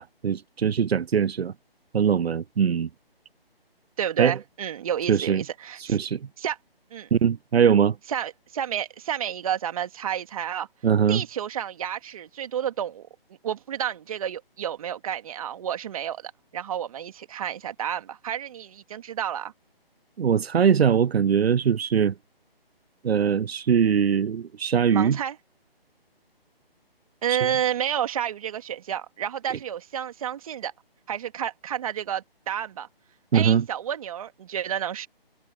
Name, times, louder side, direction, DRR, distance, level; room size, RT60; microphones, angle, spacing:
voice 1, 0.0-1.5 1.9-2.9 4.2-4.4 5.1-5.4 5.8-6.3 7.1-8.0 10.8-11.2 20.2-22.1 23.0-25.2 27.3-27.5 33.3-33.6, right 7 dB, 85° right, 0.6 m, -21 dB
voice 2, 4.0-6.0 6.4-6.6 6.9-7.1 8.1-10.7 11.1-13.1 13.4-19.5 24.9-25.4 27.2-30.7 31.1-32.9 33.3-35.1, right 9 dB, 35° right, 2.4 m, -30 dB
hypercardioid pair, 160°, 30 cm